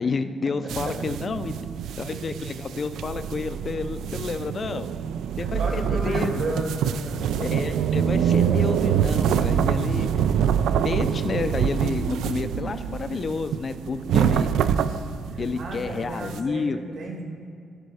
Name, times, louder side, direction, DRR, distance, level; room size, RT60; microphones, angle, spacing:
voice 1, 0.0-1.5 2.0-4.9 5.3-6.4 7.4-10.1 10.8-14.5 15.4-16.9, left 4 dB, 30° left, 11 dB, 0.4 m, -30 dB
voice 2, 0.6-0.9 5.6-7.2 15.3-17.2, right 2 dB, 60° right, 0 dB, 2.1 m, -32 dB
sound 1, 0.7-16.4, right 8 dB, 85° right, 0.3 m, -25 dB
14.5 x 5.5 x 4.8 m, 2.3 s
cardioid pair, 175°, 0 cm